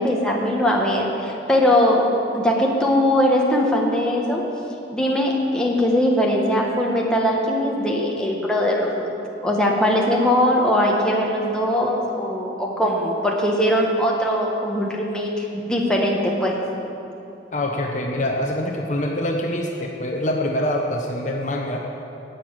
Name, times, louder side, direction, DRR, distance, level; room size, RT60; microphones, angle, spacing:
voice 1, 0.0-4.4 4.9-9.1 9.4-16.6, left 1 dB, 5° left, -2 dB, 1.3 m, -20 dB
voice 2, 17.5-21.8, left 1 dB, 40° left, 1 dB, 0.9 m, -25 dB
11.0 x 7.9 x 8.8 m, 2.8 s
head